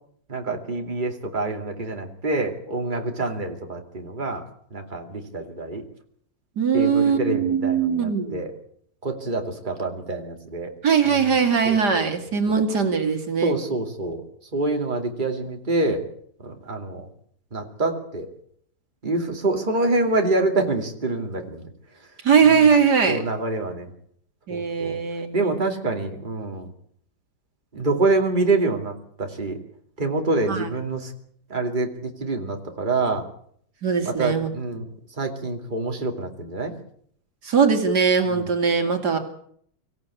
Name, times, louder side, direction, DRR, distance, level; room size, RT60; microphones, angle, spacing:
voice 1, 0.3-4.4 4.7-5.8 6.7-8.5 9.0-10.7 11.1-11.3 11.6-12.0 12.5-12.6 13.4-14.2 14.5-16.0 16.4-17.0 17.5-18.3 19.0-21.7 22.5-22.6 23.1-23.9 24.5-25.0 25.3-26.7 27.7-28.9 29.2-29.6 30.0-31.1 31.5-33.2 34.0-34.8 35.2-36.7 38.3-38.5, right 2 dB, 25° right, 3 dB, 2.7 m, -26 dB
voice 2, 6.6-8.4 10.8-13.6 22.2-23.2 24.5-25.6 30.5-30.7 33.8-34.5 37.4-39.2, right 6 dB, 75° right, 5 dB, 2.9 m, -20 dB
24.5 x 15.5 x 8.4 m, 0.65 s
omnidirectional pair, 1.8 m